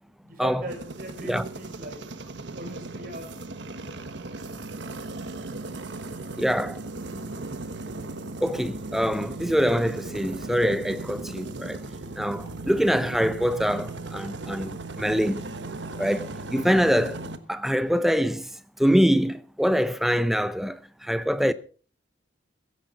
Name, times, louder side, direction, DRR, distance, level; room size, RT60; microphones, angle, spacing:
voice 1, 0.0-2.0 2.4-3.4, right 1 dB, 50° right, 6.6 m, -39 dB
sound 1, 0.7-17.4, right 2 dB, 75° right, 1.3 m, -37 dB
voice 2, 6.4-6.8 7.1-7.3 8.2-11.9 12.2-15.5 16.0-18.5 18.8-21.5, equal, ahead, 0.7 m, -24 dB
16.5 x 15.0 x 4.1 m
head